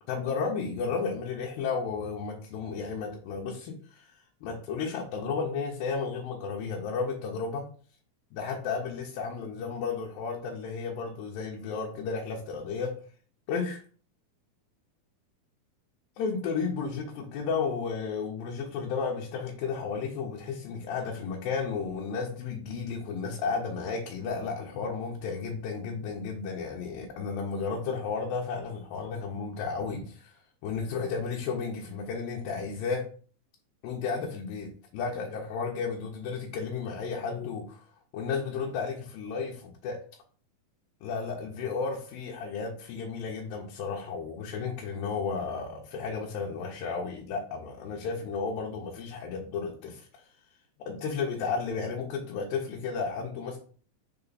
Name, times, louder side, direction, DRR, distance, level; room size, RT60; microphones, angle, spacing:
voice 1, 0.1-7.7 8.3-12.9 13.5-13.8 16.2-33.1 33.8-37.9 38.1-40.0 41.0-50.2 50.8-53.6, left 5 dB, 75° left, -1 dB, 2.6 m, -33 dB
6.8 x 3.8 x 4.0 m, 0.43 s
omnidirectional pair, 4.3 m